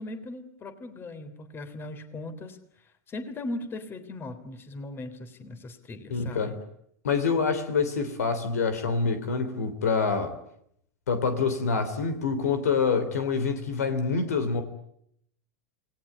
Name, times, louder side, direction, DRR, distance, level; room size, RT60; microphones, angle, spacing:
voice 1, 0.0-6.6, left 2 dB, 25° left, 3.4 m, -39 dB
voice 2, 6.1-6.6 7.0-10.3 11.1-14.6, left 5 dB, 70° left, 3.4 m, -26 dB
28.0 x 19.0 x 9.8 m
figure-of-eight pair, 90°, 9 cm